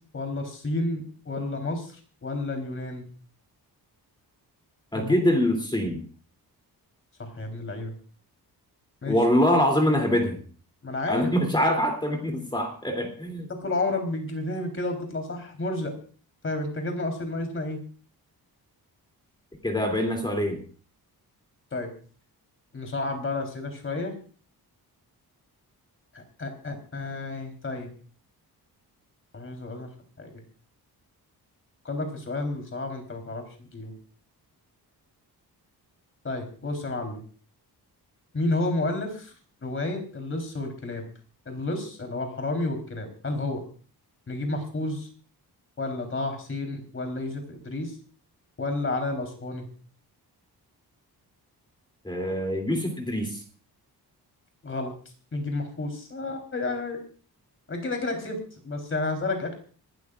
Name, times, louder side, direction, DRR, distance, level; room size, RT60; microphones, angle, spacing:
voice 1, 0.1-2.0 2.2-3.1 4.9-5.2 7.2-7.9 9.0-9.2 10.8-11.3 13.6-15.9 16.4-17.8 21.7-21.9 22.7-24.1 26.1-27.9 29.3-29.9 30.2-30.3 31.8-33.9 36.2-37.2 38.3-39.3 39.6-41.0 41.5-43.6 44.3-45.1 45.8-47.9 48.6-49.7 54.6-54.9 55.3-57.0 57.7-59.5, left 2 dB, 35° left, 4 dB, 3.7 m, -31 dB
voice 2, 4.9-6.0 9.1-10.4 11.1-13.5 19.6-20.6 52.0-53.4, equal, 10° left, 2 dB, 2.8 m, -24 dB
25.5 x 13.0 x 2.5 m, 0.40 s
wide cardioid pair, 160°, 39 cm